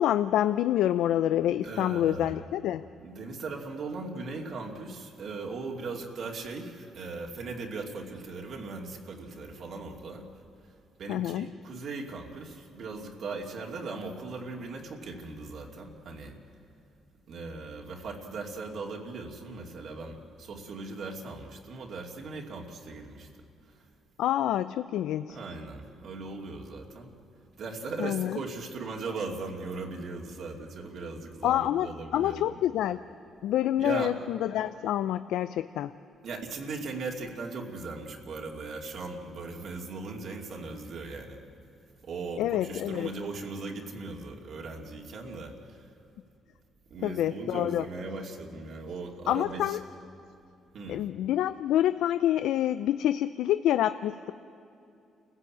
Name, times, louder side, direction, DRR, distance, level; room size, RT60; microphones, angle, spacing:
voice 1, 0.0-2.8 11.1-11.5 24.2-25.4 28.0-28.4 31.4-31.9 32.1-33.0 33.4-35.9 42.4-43.1 47.0-47.9 49.3-49.8 50.9-54.3, left 12 dB, 85° left, 12 dB, 0.4 m, -27 dB
voice 2, 1.6-2.3 3.0-10.3 11.0-16.4 17.3-23.3 23.7-23.8 25.3-27.1 27.6-32.6 33.8-34.2 36.2-41.4 42.0-45.9 46.9-49.8 50.7-51.0, right 3 dB, 65° right, 0 dB, 2.6 m, -38 dB
28.0 x 15.5 x 8.7 m, 2.6 s
cardioid pair, 90°, 0 cm